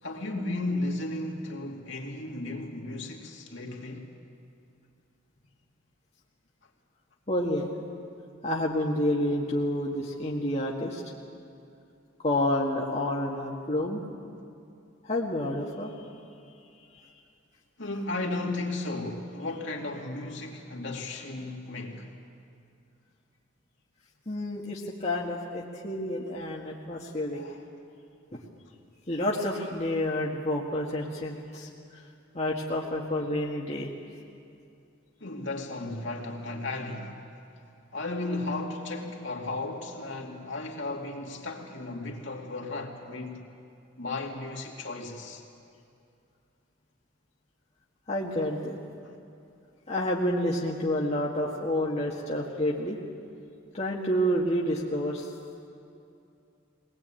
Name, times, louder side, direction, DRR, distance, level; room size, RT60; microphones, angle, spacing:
voice 1, 0.0-4.1 17.8-22.1 27.3-27.6 35.2-37.3 37.9-43.5 44.0-45.4, left 2 dB, 60° left, 2.5 m, -35 dB
voice 2, 7.3-7.7 8.4-11.0 12.2-14.0 15.0-15.9 17.1-17.2 24.3-27.4 28.3-28.4 29.1-31.7 32.3-33.9 48.1-48.8 49.9-53.0 53.7-55.3, left 1 dB, 35° left, 1.7 m, -29 dB
22.0 x 19.5 x 8.9 m
head